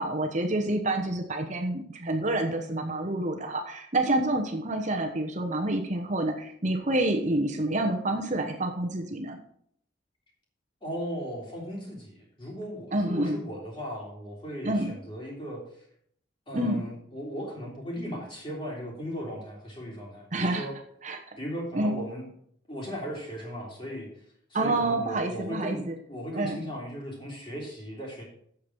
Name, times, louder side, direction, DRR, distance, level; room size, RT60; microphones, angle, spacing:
voice 1, 0.0-9.4 12.9-13.4 14.6-14.9 16.5-16.8 20.3-20.7 21.0-21.2 21.7-22.0 24.5-26.0 26.3-26.6, right 1 dB, 40° right, 4 dB, 1.0 m, -28 dB
voice 2, 10.8-15.8 16.5-20.7 21.4-22.3 22.7-24.1 24.6-25.8 26.1-28.2, equal, 25° left, -3 dB, 3.4 m, -37 dB
8.4 x 7.1 x 6.2 m, 0.68 s
head